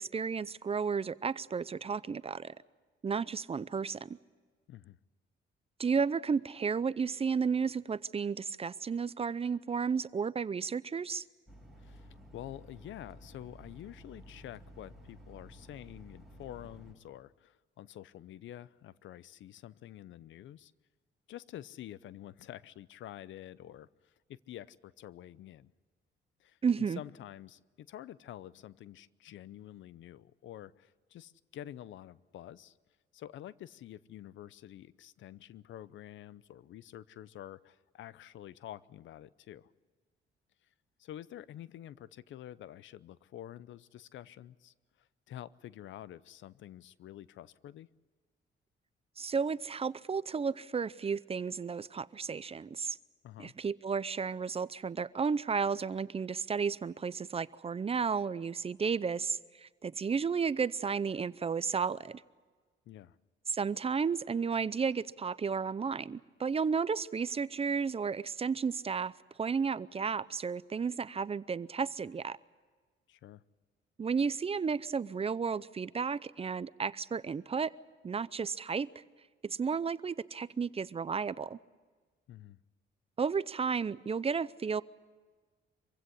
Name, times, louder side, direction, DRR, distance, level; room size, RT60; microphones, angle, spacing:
voice 1, 0.0-2.5 3.0-4.2 5.8-11.2 26.6-27.0 49.2-53.0 53.4-62.2 63.5-69.1 69.4-72.4 74.0-77.7 78.0-78.9 79.4-81.6 83.2-84.8, right 5 dB, 30° right, 18 dB, 0.6 m, -33 dB
sound 1, 11.5-16.9, equal, ahead, 7.3 m, -53 dB
voice 2, 11.8-20.7 21.3-25.7 26.4-26.6 27.0-32.8 33.1-39.7 41.0-47.9 53.2-53.5 62.9-63.2 73.1-73.4 82.3-82.6, left 12 dB, 75° left, 19 dB, 0.7 m, -48 dB
25.0 x 16.0 x 9.8 m, 1.4 s
cardioid pair, 90°, 20 cm